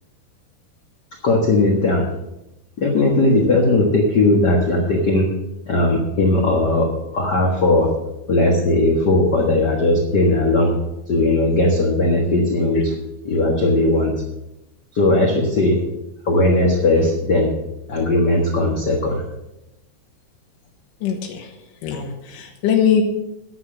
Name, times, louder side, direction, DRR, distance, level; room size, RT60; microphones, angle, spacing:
voice 1, 1.2-2.1 2.8-5.3 5.7-7.9 8.3-10.8 11.1-12.9 13.2-14.1 14.9-15.8 16.2-17.5 17.9-19.2, left 2 dB, 50° left, 0 dB, 1.3 m, -18 dB
voice 2, 21.0-21.5 21.8-23.0, left 8 dB, 70° left, 1 dB, 2.7 m, -21 dB
11.0 x 7.8 x 7.2 m, 0.88 s
omnidirectional pair, 4.1 m